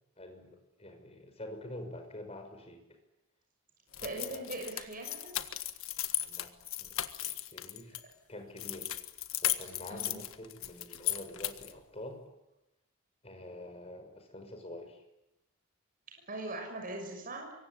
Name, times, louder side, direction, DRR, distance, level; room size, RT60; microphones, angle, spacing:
voice 1, 0.2-2.8 4.2-4.4 6.3-6.5 6.8-8.0 8.3-9.0 9.4-12.2 13.2-15.0, left 1 dB, 30° left, 5 dB, 5.8 m, -46 dB
sound 1, 3.9-8.0 8.6-11.8, left 13 dB, 70° left, 1.6 m, -36 dB
voice 2, 4.0-5.3 9.9-10.2 16.3-17.5, right 2 dB, 40° right, 1 dB, 6.4 m, -40 dB
25.5 x 23.5 x 10.0 m, 0.92 s
head